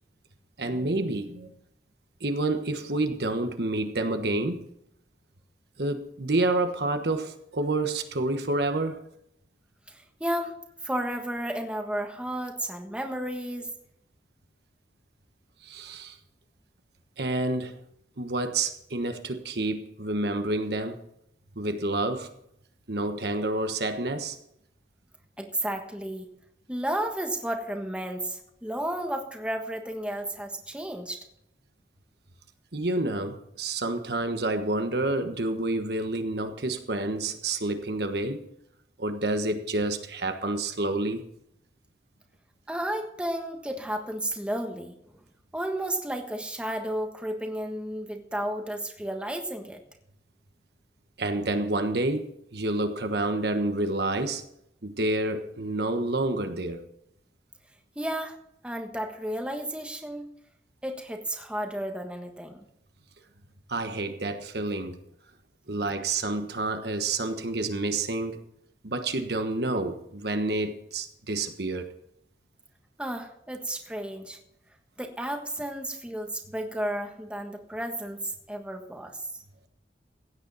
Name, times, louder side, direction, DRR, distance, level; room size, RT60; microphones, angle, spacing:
voice 1, 0.6-1.5 2.2-4.6 5.8-9.0 15.6-16.2 17.2-17.8 18.2-21.0 21.5-22.3 22.9-24.4 32.7-38.4 39.0-41.2 51.2-54.4 54.8-56.8 63.7-65.0 65.7-68.4 68.8-71.9, right 2 dB, 70° right, 1.3 m, -29 dB
voice 2, 9.9-10.6 10.8-13.7 25.4-26.3 26.7-31.2 42.7-45.0 45.5-49.8 57.9-58.4 58.6-60.3 60.8-62.6 73.0-74.4 75.0-79.3, right 1 dB, 5° right, 1.4 m, -32 dB
16.0 x 9.5 x 4.2 m
head